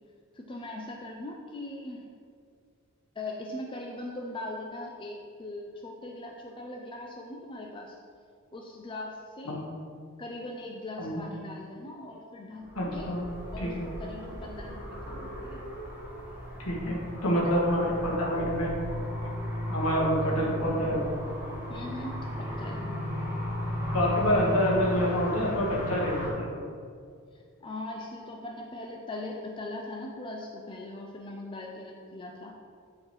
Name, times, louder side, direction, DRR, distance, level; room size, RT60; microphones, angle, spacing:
voice 1, 0.3-2.1 3.2-8.0 8.5-9.6 10.2-13.1 13.5-15.6 21.7-23.0 27.3-32.6, left 2 dB, 20° left, 0 dB, 0.3 m, -40 dB
sound 1, 12.6-26.3, left 1 dB, 10° right, 1.0 m, -35 dB
voice 2, 12.7-13.2 13.6-13.8 16.6-18.7 19.7-21.1 23.9-26.6, equal, 80° left, -4 dB, 1.4 m, -27 dB
8.7 x 3.8 x 3.1 m, 2.2 s
head